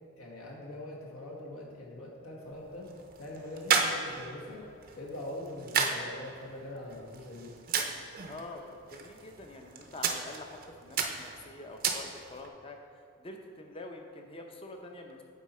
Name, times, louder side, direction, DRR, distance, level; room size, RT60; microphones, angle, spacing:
voice 1, 0.2-2.9 3.2-4.6 4.9-7.5, left 1 dB, 75° left, -2 dB, 1.4 m, -42 dB
sound 1, 2.4-12.5, right 5 dB, 45° right, 0.5 m, -35 dB
voice 2, 8.3-12.8 13.2-15.2, left 2 dB, 25° left, 3 dB, 0.6 m, -46 dB
8.3 x 4.1 x 4.2 m, 2.4 s
head